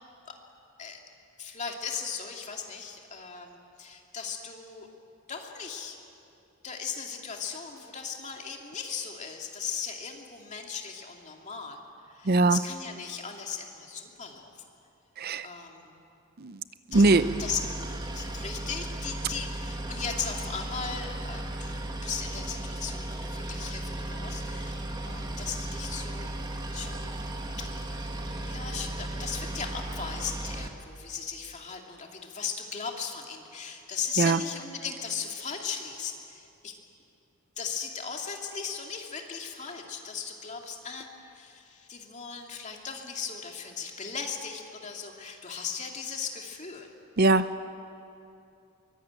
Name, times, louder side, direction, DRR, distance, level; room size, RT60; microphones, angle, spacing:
voice 1, 1.4-4.9 5.3-6.0 6.6-11.8 12.1-14.5 15.4-15.9 16.9-17.0 17.4-17.6 18.1-26.4 26.7-27.2 27.6-27.8 28.5-36.7 37.6-46.9, left 6 dB, 35° left, 1 dB, 2.6 m, -37 dB
voice 2, 12.2-12.6 15.2-15.5 16.4-16.6 16.9-17.4 34.2-34.5 47.2-47.5, right 3 dB, 45° right, 13 dB, 0.6 m, -22 dB
Boat Water vehicle, 16.9-30.7, right 1 dB, 20° right, 1.6 m, -36 dB
23.5 x 22.5 x 9.0 m, 2.6 s
head